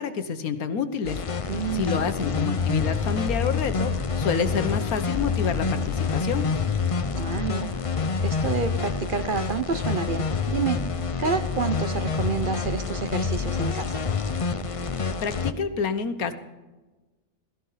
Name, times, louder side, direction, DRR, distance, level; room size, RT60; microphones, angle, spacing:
voice 1, 0.0-6.5 15.2-16.3, left 6 dB, 90° left, 10 dB, 1.6 m, -28 dB
sound 1, 1.0-15.5, left 5 dB, 40° left, 0.5 m, -27 dB
voice 2, 1.5-1.9 7.2-10.8 11.2-14.0, right 5 dB, 45° right, 9 dB, 0.7 m, -29 dB
17.0 x 14.0 x 5.7 m, 1.2 s
omnidirectional pair, 1.5 m